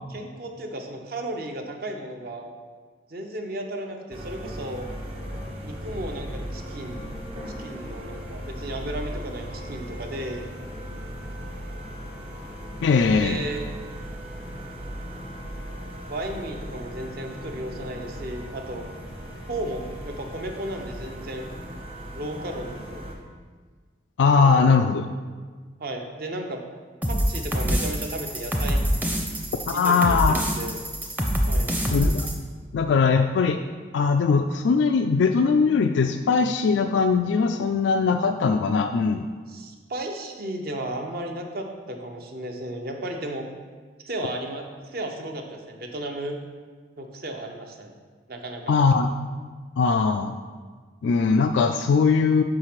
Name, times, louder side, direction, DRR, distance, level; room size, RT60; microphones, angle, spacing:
voice 1, 0.1-2.5 3.1-4.9 5.6-7.0 7.6-10.5 13.1-13.7 16.1-18.9 19.5-21.5 22.1-23.0 24.4-24.6 25.8-26.7 27.1-28.8 29.7-30.9 31.5-31.8 39.5-43.5 44.0-46.4 47.0-47.9 48.3-48.8, right 1 dB, 55° right, 3 dB, 0.8 m, -34 dB
sound 1, 4.1-23.1, equal, 35° right, 1.0 m, -37 dB
voice 2, 12.8-13.4 24.2-25.1 29.7-30.4 31.9-32.3 32.7-33.6 33.9-39.3 48.7-49.1 49.8-50.3 51.0-52.4, left 5 dB, 80° left, 7 dB, 0.3 m, -20 dB
sound 2, 27.0-32.3, equal, 10° right, 0.6 m, -25 dB
5.7 x 4.8 x 5.9 m, 1.5 s
head